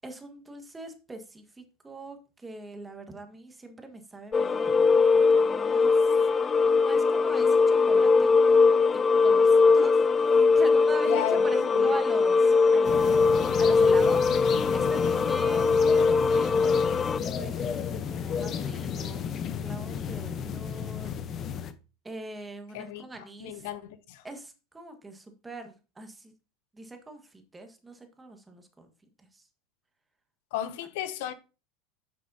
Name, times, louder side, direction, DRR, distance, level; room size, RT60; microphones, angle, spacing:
voice 1, 0.0-6.0 6.8-8.3 8.9-15.6 15.9-16.9 17.2-19.3 19.6-21.2 22.0-23.7 24.2-26.3 26.7-28.9 29.3-29.4, right 2 dB, 15° right, 1.6 m, -42 dB
sound 1, 4.3-17.2, left 4 dB, 25° left, 0.3 m, -21 dB
voice 2, 11.1-11.9 22.7-24.2 30.5-31.3, left 12 dB, 70° left, 0.7 m, -34 dB
sound 2, 12.8-21.7, left 7 dB, 40° left, 0.8 m, -33 dB
9.6 x 6.4 x 2.8 m
supercardioid pair, 110°, 0 cm